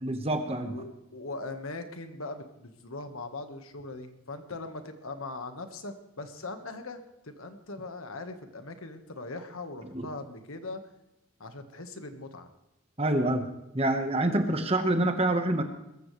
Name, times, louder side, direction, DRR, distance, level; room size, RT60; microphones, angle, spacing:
voice 1, 0.0-0.7 9.9-10.1 13.0-13.5 13.7-15.6, right 1 dB, 30° right, 6 dB, 1.3 m, -26 dB
voice 2, 0.7-10.8 11.4-12.5, left 3 dB, 80° left, 7 dB, 1.6 m, -40 dB
21.0 x 14.5 x 3.3 m, 0.89 s
head